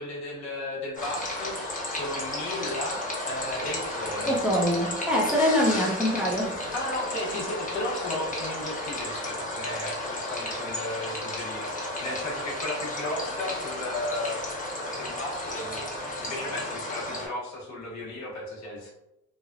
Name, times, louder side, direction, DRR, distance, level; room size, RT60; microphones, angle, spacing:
voice 1, 0.0-4.4 6.7-11.8 12.0-14.4 14.8-15.9 16.2-18.9, left 1 dB, 65° left, -3 dB, 1.0 m, -35 dB
sound 1, 1.0-17.3, left 1 dB, 25° left, 0.9 m, -33 dB
voice 2, 4.2-6.7, equal, 5° right, -3 dB, 0.6 m, -24 dB
3.2 x 2.2 x 2.4 m, 0.90 s
cardioid pair, 90°, 30 cm